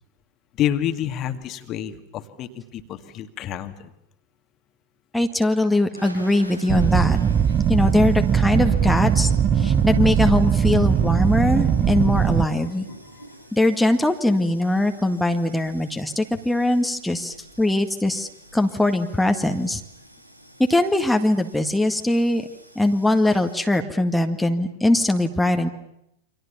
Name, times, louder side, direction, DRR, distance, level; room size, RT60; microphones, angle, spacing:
voice 1, 0.6-3.9 7.3-7.5 13.1-13.2, left 11 dB, 35° left, 8 dB, 2.2 m, -28 dB
voice 2, 5.1-7.2 7.7-12.9 13.5-19.8 20.7-22.5 22.8-25.7, left 1 dB, 5° left, 4 dB, 2.0 m, -21 dB
sound 1, 5.9-23.7, right 1 dB, 85° right, 2.5 m, -43 dB
sound 2, 6.7-12.5, right 8 dB, 25° right, 1.0 m, -20 dB
29.5 x 25.0 x 7.1 m, 0.80 s
figure-of-eight pair, 90°, 0 cm